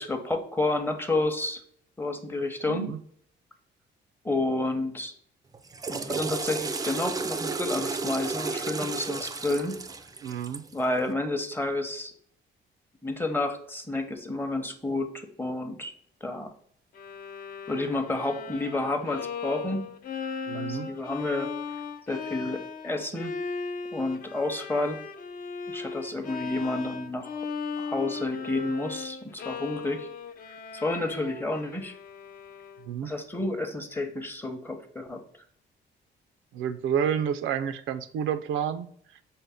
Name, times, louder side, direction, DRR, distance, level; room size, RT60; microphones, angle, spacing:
voice 1, 0.0-1.6 2.0-2.8 4.2-5.1 5.9-9.8 10.7-12.1 13.0-15.9 16.2-16.5 17.7-19.9 20.5-21.5 22.1-23.3 23.9-25.0 25.7-27.4 27.8-30.1 30.7-32.0 33.0-35.2, left 2 dB, 10° left, 6 dB, 0.7 m, -30 dB
voice 2, 2.7-3.0 10.2-10.7 20.5-20.9 32.9-33.1 36.5-38.9, right 8 dB, 85° right, 10 dB, 0.4 m, -29 dB
Water / Toilet flush, 5.5-10.8, right 4 dB, 20° right, 0.3 m, -33 dB
Bowed string instrument, 16.9-33.0, left 5 dB, 45° left, 0.5 m, -38 dB
5.3 x 2.1 x 3.4 m, 0.63 s
cardioid pair, 90°, 20 cm